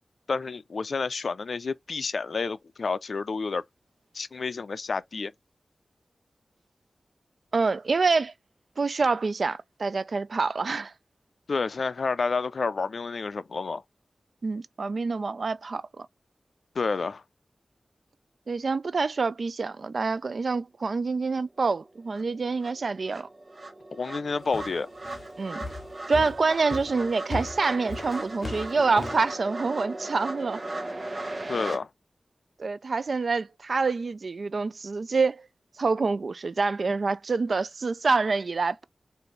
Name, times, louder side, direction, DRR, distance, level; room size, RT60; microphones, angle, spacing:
voice 1, 0.3-3.6 4.1-5.3 11.5-13.8 16.8-17.2 23.9-24.9 31.5-31.9, left 4 dB, 70° left, 0.4 m, -29 dB
voice 2, 7.5-8.3 8.8-10.9 14.4-16.1 18.5-23.3 25.4-25.6 26.1-30.6 32.6-35.5 35.8-38.8, right 4 dB, 60° right, 0.3 m, -26 dB
sound 1, 21.7-21.8 22.1-31.8, right 2 dB, 40° right, 0.9 m, -37 dB
sound 2, 24.5-29.3, left 2 dB, 50° left, 0.8 m, -37 dB
4.6 x 2.6 x 3.1 m
wide cardioid pair, 100°, 0 cm